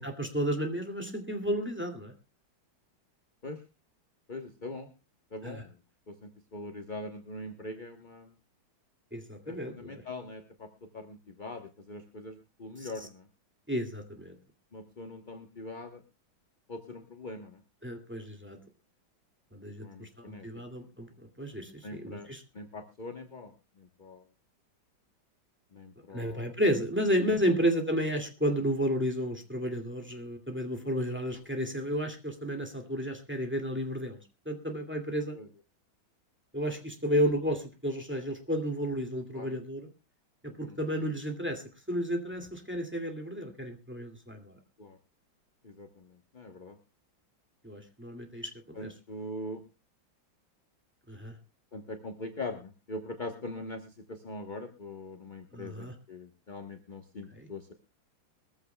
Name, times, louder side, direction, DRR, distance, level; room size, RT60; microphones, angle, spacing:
voice 1, 0.0-2.1 5.4-5.6 9.1-10.0 12.8-12.9 13.7-14.4 17.8-18.6 19.5-22.4 26.1-34.2 34.5-35.4 36.5-39.9 40.4-44.5 47.6-48.5 48.8-48.9 51.1-51.4 55.5-55.9 57.3-57.5, equal, 5° right, 3 dB, 2.1 m, -32 dB
voice 2, 4.3-4.9 5.3-5.8 6.1-8.3 9.4-13.3 14.7-16.0 16.7-17.6 19.8-20.5 21.8-22.3 22.5-24.2 25.7-26.5 35.3-35.5 39.3-39.5 40.7-40.8 44.8-45.0 45.6-46.8 48.7-49.6 51.7-57.7, left 2 dB, 30° left, 5 dB, 0.9 m, -42 dB
22.0 x 14.5 x 2.2 m, 0.29 s
omnidirectional pair, 2.2 m